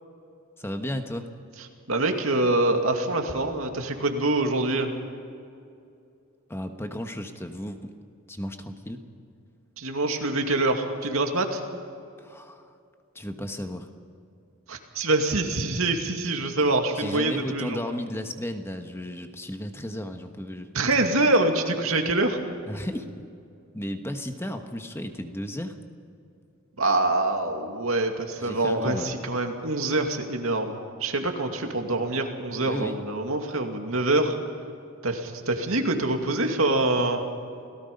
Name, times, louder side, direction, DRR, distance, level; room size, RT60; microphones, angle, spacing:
voice 1, 0.6-1.3 6.5-7.9 8.3-9.0 12.2-12.7 13.1-13.9 16.6-20.7 22.7-23.2 23.7-25.8 28.4-29.1 32.6-33.0, left 1 dB, 10° left, 6 dB, 1.3 m, -34 dB
voice 2, 1.9-5.0 9.8-11.6 14.7-17.8 20.7-22.4 26.8-34.3 35.0-37.2, right 2 dB, 80° right, 4 dB, 2.4 m, -25 dB
29.0 x 18.0 x 5.4 m, 2.5 s
head